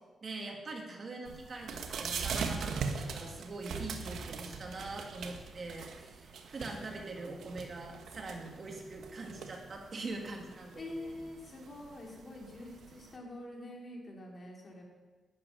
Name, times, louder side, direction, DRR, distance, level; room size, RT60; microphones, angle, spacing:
voice 1, 0.2-11.2, right 2 dB, 50° right, 1 dB, 2.8 m, -43 dB
sound 1, 1.2-13.1, right 5 dB, 85° right, 1.5 m, -41 dB
voice 2, 10.7-14.8, left 1 dB, 40° left, -1 dB, 4.5 m, -45 dB
12.0 x 8.8 x 9.8 m, 1.3 s
cardioid pair, 90°, 0 cm